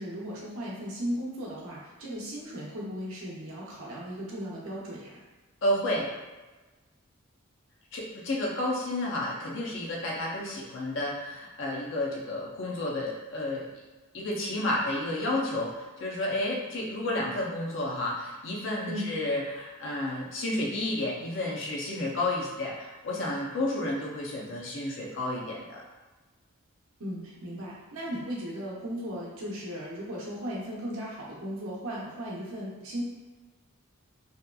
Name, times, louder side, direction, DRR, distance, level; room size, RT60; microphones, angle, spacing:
voice 1, 0.0-5.2 18.9-19.1 27.0-33.0, equal, 80° right, -5 dB, 0.7 m, -36 dB
voice 2, 5.6-6.1 7.9-13.6 14.1-25.8, left 1 dB, 55° left, -3 dB, 0.5 m, -31 dB
2.8 x 2.3 x 2.2 m, 1.2 s
head